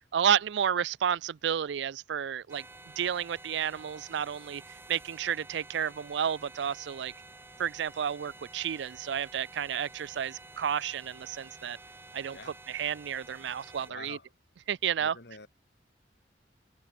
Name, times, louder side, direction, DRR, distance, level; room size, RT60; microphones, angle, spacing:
voice 1, 0.1-2.6 3.0-4.6 4.9-7.1 7.6-11.8 12.1-12.4 12.7-14.2 14.7-15.1, right 8 dB, 75° right, 0.4 m, -31 dB
sound 1, 2.5-13.9, right 2 dB, 15° right, 1.1 m, -51 dB
voice 2, 13.8-14.3 15.0-15.5, left 3 dB, 65° left, 2.5 m, -47 dB
head